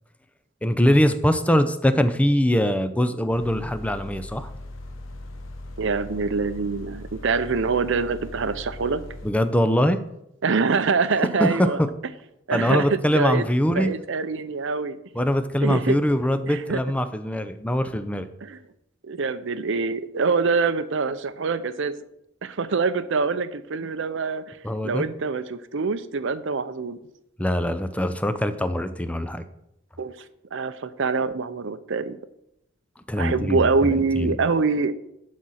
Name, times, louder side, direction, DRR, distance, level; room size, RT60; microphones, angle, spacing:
voice 1, 0.6-4.5 9.2-10.0 11.4-11.9 12.5-13.9 15.1-18.3 24.6-25.0 27.4-29.4 33.0-34.4, equal, 5° left, 10 dB, 0.5 m, -22 dB
sound 1, 3.3-9.3, left 1 dB, 75° left, 1.1 m, -39 dB
voice 2, 5.8-9.0 10.4-11.8 12.5-15.0 15.6-16.0 16.4-16.8 18.4-18.6 19.0-22.0 22.4-24.6 24.8-27.0 30.0-30.2 30.5-32.2 33.2-34.9, right 4 dB, 70° right, 12 dB, 0.6 m, -25 dB
11.5 x 4.2 x 6.4 m, 0.82 s
head